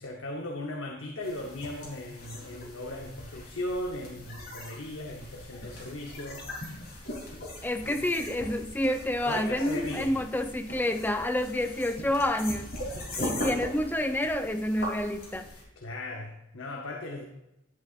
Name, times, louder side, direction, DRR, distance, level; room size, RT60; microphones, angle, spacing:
voice 1, 0.0-7.0 7.8-8.0 9.2-10.2 13.1-13.5 15.5-17.3, left 1 dB, 75° left, 1.0 m, -38 dB
sound 1, 1.2-15.6, left 1 dB, 50° left, 3.3 m, -40 dB
voice 2, 7.6-12.7 13.2-15.5, left 1 dB, 10° left, 0.5 m, -28 dB
11.0 x 8.4 x 2.5 m
head